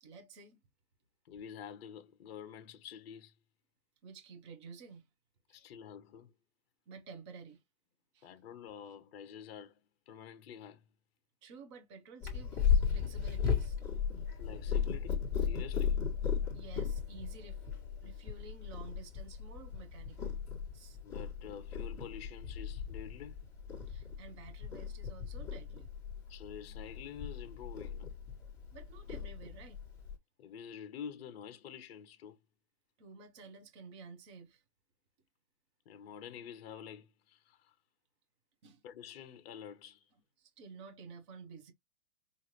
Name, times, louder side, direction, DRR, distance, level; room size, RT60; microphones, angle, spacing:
voice 1, 0.0-0.6 4.0-5.1 5.5-5.6 6.9-7.6 8.1-8.3 11.4-13.8 16.5-17.6 18.0-20.2 20.7-21.0 23.9-25.9 28.7-29.8 33.0-34.6 38.6-38.8 40.4-41.7, right 4 dB, 20° right, 0.6 m, -52 dB
voice 2, 1.2-3.3 5.5-6.3 8.2-9.8 10.1-10.8 14.4-16.0 21.0-23.4 26.3-28.1 30.4-32.4 35.9-37.7 38.8-40.1, left 8 dB, 45° left, 0.8 m, -48 dB
Purr, 12.2-30.1, left 7 dB, 5° left, 1.2 m, -36 dB
5.5 x 2.5 x 3.0 m
hypercardioid pair, 165°, 44 cm